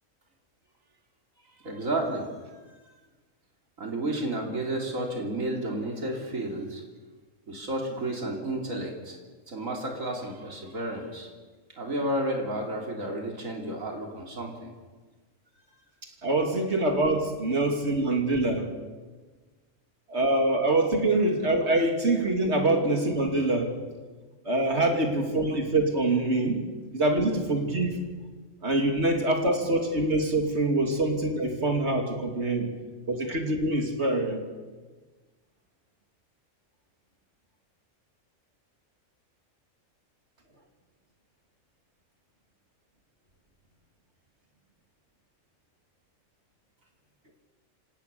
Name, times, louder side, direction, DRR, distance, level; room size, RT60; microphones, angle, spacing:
voice 1, 1.5-2.9 3.8-6.8 7.5-9.2 9.5-11.3 11.8-14.7, right 1 dB, 80° right, 1 dB, 3.6 m, -32 dB
voice 2, 16.2-18.7 20.1-23.7 24.4-26.6 26.9-27.9 28.6-32.7 33.1-34.4, right 2 dB, 55° right, 3 dB, 3.1 m, -25 dB
27.0 x 17.5 x 6.9 m, 1.3 s
omnidirectional pair, 1.4 m